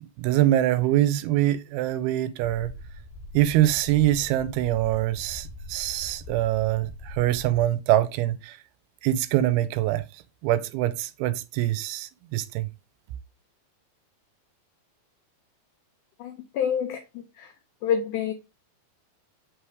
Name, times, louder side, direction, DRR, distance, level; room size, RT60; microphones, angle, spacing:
voice 1, 0.2-2.7 3.3-8.6 9.0-10.0 10.4-12.7, right 14 dB, 90° right, 2.5 m, -24 dB
sound 1, 2.4-7.7, left 1 dB, 45° left, 1.6 m, -42 dB
voice 2, 16.2-17.5 17.8-18.3, left 8 dB, 85° left, 1.7 m, -28 dB
6.3 x 3.1 x 4.7 m
omnidirectional pair, 4.3 m